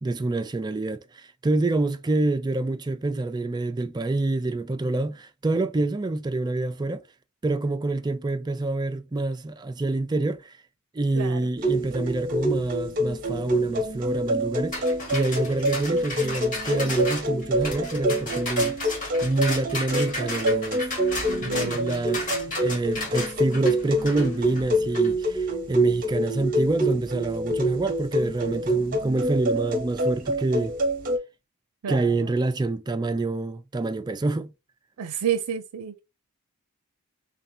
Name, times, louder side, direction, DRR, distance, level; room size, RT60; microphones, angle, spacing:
voice 1, 0.0-7.0 7.4-10.4 10.9-14.8 15.1-18.9 19.2-20.9 21.4-22.2 22.6-30.7 31.9-34.5, right 2 dB, 20° right, 0.3 m, -27 dB
voice 2, 11.1-11.5 21.3-21.9 31.8-32.3 35.0-36.0, right 8 dB, 90° right, 0.5 m, -30 dB
sound 1, 11.6-31.2, right 1 dB, 40° right, 0.8 m, -26 dB
sound 2, 14.7-25.1, left 2 dB, 35° left, 1.6 m, -34 dB
3.3 x 2.7 x 4.2 m
head